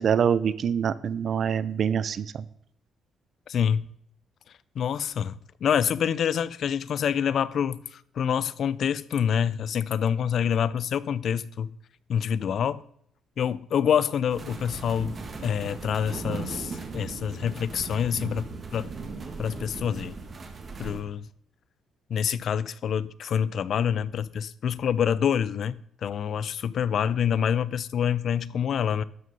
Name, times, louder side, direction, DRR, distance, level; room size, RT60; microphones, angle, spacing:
voice 1, 0.0-2.5, right 7 dB, 60° right, 0.6 m, -25 dB
voice 2, 3.5-3.9 4.8-5.3 5.6-11.7 12.1-12.8 13.4-15.2 15.4-18.9 19.4-20.2 20.8-21.2 22.1-29.0, left 8 dB, 65° left, 0.5 m, -26 dB
sound 1, 14.3-21.0, right 4 dB, 40° right, 1.7 m, -37 dB
12.5 x 6.5 x 5.5 m
cardioid pair, 90°, 0 cm